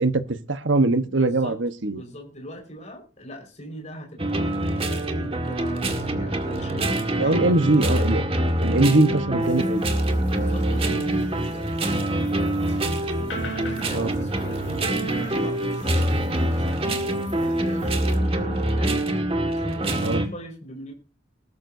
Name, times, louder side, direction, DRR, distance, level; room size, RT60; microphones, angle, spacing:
voice 1, 0.0-2.0 7.2-8.2 8.6-9.8 13.9-14.1 20.0-20.2, right 2 dB, 75° right, 10 dB, 1.2 m, -21 dB
voice 2, 1.1-1.6 1.9-7.6 10.2-19.0 19.5-20.9, equal, 35° left, 2 dB, 5.0 m, -39 dB
sound 1, 4.2-20.3, right 1 dB, 30° right, 1.9 m, -25 dB
sound 2, 9.4-18.2, left 4 dB, 85° left, 3.4 m, -46 dB
20.0 x 12.5 x 2.7 m, 0.33 s
head